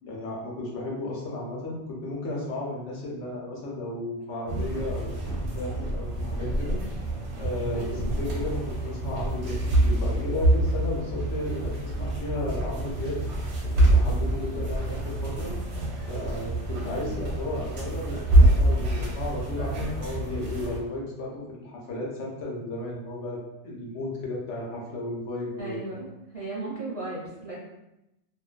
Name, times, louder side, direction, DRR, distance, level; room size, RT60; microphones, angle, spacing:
voice 1, 0.0-5.1 5.5-6.8 7.4-13.2 13.7-15.5 16.1-25.8, left 2 dB, 85° left, -3 dB, 1.0 m, -34 dB
sound 1, 4.5-20.8, right 1 dB, 70° right, 0.9 m, -26 dB
voice 2, 7.7-8.2 16.8-17.1 25.6-26.1 26.3-27.6, right 2 dB, 40° right, -7 dB, 0.5 m, -36 dB
2.5 x 2.1 x 2.4 m, 0.90 s
omnidirectional pair, 1.2 m